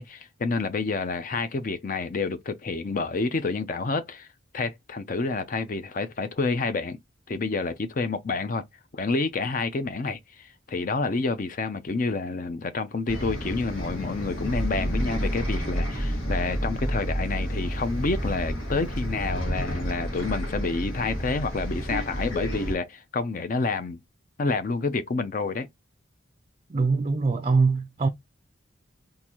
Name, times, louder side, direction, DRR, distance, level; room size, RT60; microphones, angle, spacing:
voice 1, 0.0-4.3 4.5-7.0 7.3-8.6 8.9-24.0 24.4-25.7, left 3 dB, 40° left, 0.4 m, -29 dB
Bus, 13.1-22.8, equal, 80° left, 1.5 m, -30 dB
voice 2, 26.7-28.1, right 4 dB, 30° right, 0.4 m, -23 dB
3.8 x 2.5 x 2.9 m
head